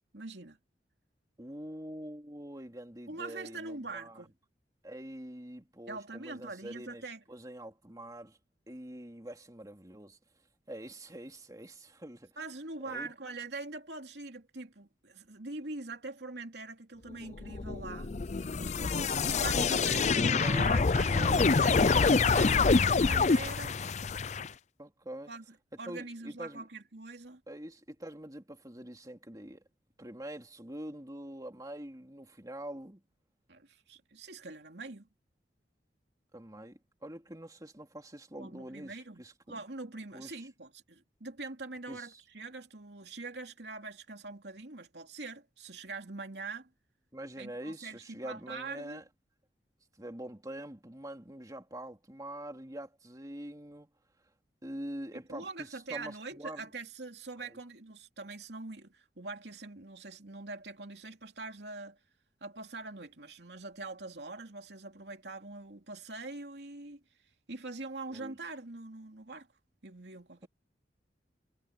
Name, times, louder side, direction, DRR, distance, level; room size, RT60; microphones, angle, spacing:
voice 1, 0.1-0.6 3.1-4.3 5.9-7.2 12.4-18.1 19.2-23.8 25.3-25.4 25.8-27.4 33.5-35.1 38.4-46.7 47.4-49.0 55.3-62.0 62.4-67.0 67.5-69.5 69.8-70.5, right 3 dB, 75° right, 2.9 m, -43 dB
voice 2, 1.4-4.2 4.8-8.4 8.7-10.2 10.7-12.4 12.8-13.1 19.3-21.5 24.8-25.3 25.8-26.7 27.5-29.6 30.0-33.0 36.3-39.6 40.1-40.5 41.9-42.2 47.1-49.0 50.0-53.9 54.6-56.7 57.4-57.6 68.1-68.4, right 1 dB, 20° right, 2.7 m, -45 dB
sound 1, 17.4-24.5, left 4 dB, 40° left, 0.5 m, -26 dB
head